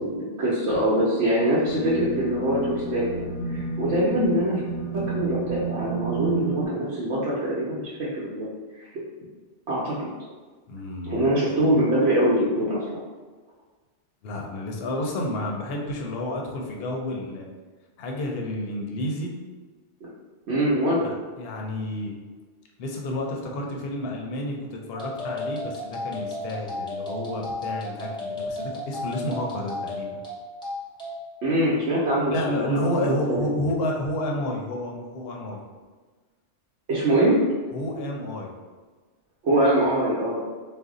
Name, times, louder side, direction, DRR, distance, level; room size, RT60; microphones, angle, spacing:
voice 1, 0.0-3.2 3.5-4.6 4.9-8.5 8.8-8.9 9.7-10.1 11.0-13.0 20.5-21.1 31.4-33.5 36.9-37.4 39.4-40.4, right 1 dB, 75° right, -8 dB, 0.9 m, -23 dB
sound 1, 1.7-6.7, right 5 dB, 85° left, 0.9 m, -31 dB
voice 2, 10.7-11.3 14.2-17.5 18.0-19.3 21.0-22.1 22.8-30.2 32.3-35.6 37.7-38.5, left 1 dB, 65° left, 0 dB, 0.7 m, -30 dB
sound 2, 24.9-31.2, left 1 dB, 5° left, 0.7 m, -33 dB
2.6 x 2.0 x 3.6 m, 1.4 s
omnidirectional pair, 1.2 m